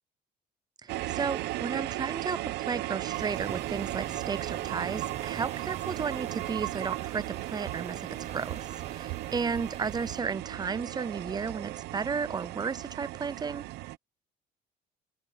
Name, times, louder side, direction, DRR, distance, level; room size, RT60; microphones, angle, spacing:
voice 1, 0.8-8.1 8.3-13.7, right 5 dB, 25° right, 0.5 m, -34 dB
sound 1, 0.9-14.0, right 17 dB, 85° right, 0.9 m, -36 dB
sound 2, 3.1-10.2, right 7 dB, 40° right, 5.6 m, -44 dB
open air
cardioid pair, 110°, 17 cm